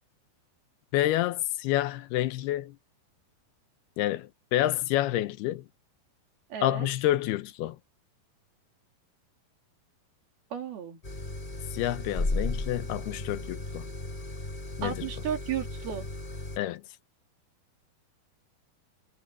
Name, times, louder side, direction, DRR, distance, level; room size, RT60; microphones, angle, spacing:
voice 1, 0.9-2.8 4.0-5.6 6.6-7.8 11.7-13.9 14.8-15.1 16.6-16.8, left 14 dB, 90° left, 2.9 m, -28 dB
voice 2, 6.5-6.9 10.5-11.0 14.8-16.1, right 9 dB, 75° right, 4.7 m, -34 dB
sound 1, 11.0-16.6, left 2 dB, 20° left, 1.4 m, -35 dB
omnidirectional pair, 4.4 m